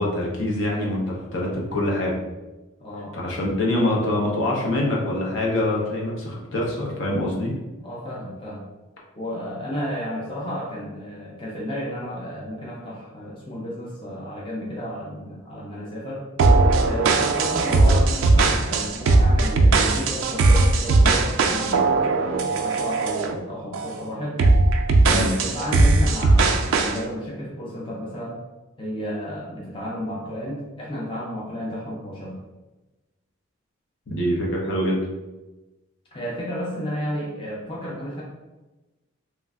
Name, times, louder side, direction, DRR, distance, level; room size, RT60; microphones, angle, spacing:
voice 1, 0.0-2.2 3.1-7.5 25.1-25.3 34.1-35.0, left 1 dB, 65° left, -2 dB, 0.7 m, -24 dB
voice 2, 2.8-3.1 7.8-8.6 9.1-16.3 16.8-24.4 25.0-28.4 28.8-32.4 36.1-38.2, equal, 25° left, -5 dB, 0.5 m, -32 dB
sound 1, 16.4-23.4 23.7-24.0 24.4-27.0, right 3 dB, 70° right, 0.3 m, -18 dB
3.1 x 2.4 x 2.3 m, 1.1 s
head